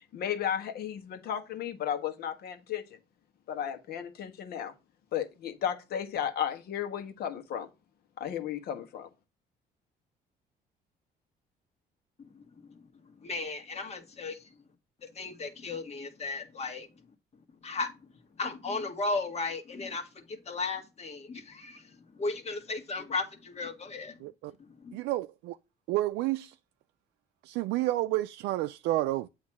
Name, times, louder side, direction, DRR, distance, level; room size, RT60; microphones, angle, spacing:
voice 1, 0.1-2.8 3.5-4.7 5.1-7.7 8.2-9.1, left 9 dB, 65° left, 1.5 m, -34 dB
voice 2, 13.2-14.4 15.2-16.9 17.6-17.9 18.4-21.8 22.2-24.2 24.8-24.9, left 3 dB, 40° left, 1.7 m, -35 dB
voice 3, 24.2-24.5 24.9-25.6 25.9-26.5 27.4-29.3, right 16 dB, 90° right, 0.4 m, -30 dB
8.3 x 3.1 x 5.9 m
cardioid pair, 110°, 17 cm